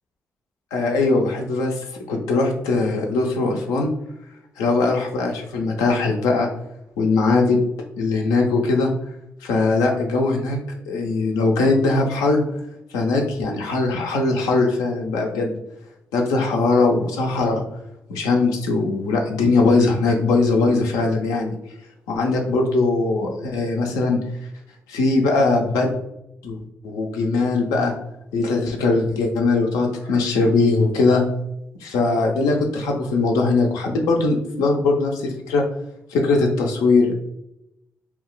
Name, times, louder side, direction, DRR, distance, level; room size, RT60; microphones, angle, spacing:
voice 1, 0.7-3.9 4.6-6.5 7.0-7.6 8.0-8.9 9.4-10.6 10.9-12.4 12.9-15.5 16.1-17.6 18.1-21.5 22.1-24.2 24.9-25.9 26.4-26.6 26.8-27.9 28.3-31.2 31.8-35.6 36.1-37.1, left 3 dB, 85° left, 2 dB, 0.6 m, -20 dB
2.3 x 2.2 x 3.8 m, 0.83 s
hypercardioid pair, 50°, 6 cm